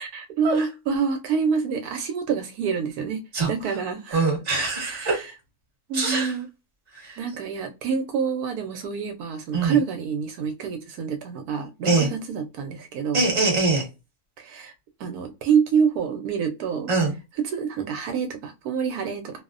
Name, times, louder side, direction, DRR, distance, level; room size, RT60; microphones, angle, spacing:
voice 1, 0.0-3.2 3.5-4.3 4.8-5.3 5.9-6.5 7.2-13.2 14.4-14.7 15.0-16.9 17.4-19.4, right 6 dB, 80° right, 1.1 m, -27 dB
voice 2, 4.1-5.2 5.9-6.3 7.0-7.2 9.5-9.8 11.8-12.1 13.1-13.8 16.9-17.1, right 3 dB, 30° right, 1.0 m, -22 dB
2.6 x 2.0 x 2.3 m
omnidirectional pair, 1.6 m